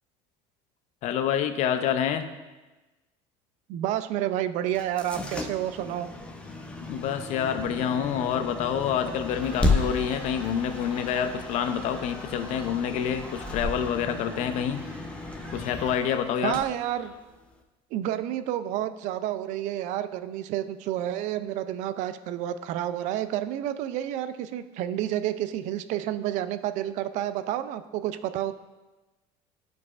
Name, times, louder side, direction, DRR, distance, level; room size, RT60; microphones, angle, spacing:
voice 1, 1.0-2.3 6.9-14.8 15.5-16.6, left 8 dB, 55° left, 9 dB, 0.5 m, -27 dB
voice 2, 3.7-6.1 16.4-17.1 17.9-28.6, right 12 dB, 55° right, 12 dB, 0.4 m, -30 dB
sound 1, 4.7-17.6, left 2 dB, 10° left, 0.5 m, -34 dB
Cheering, 9.3-17.4, equal, 10° right, 1.2 m, -47 dB
10.5 x 4.7 x 2.4 m, 1.2 s
cardioid pair, 135°, 14 cm